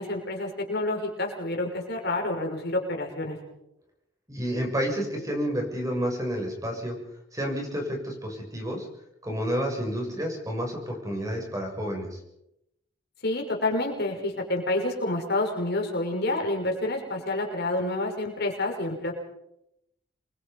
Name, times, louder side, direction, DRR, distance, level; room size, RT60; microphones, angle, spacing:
voice 1, 0.0-3.4 13.2-19.1, left 2 dB, 60° left, 1 dB, 5.7 m, -28 dB
voice 2, 4.3-7.0 7.3-8.9 9.2-12.2, equal, 20° right, 1 dB, 7.1 m, -30 dB
27.0 x 23.5 x 5.4 m, 0.82 s
head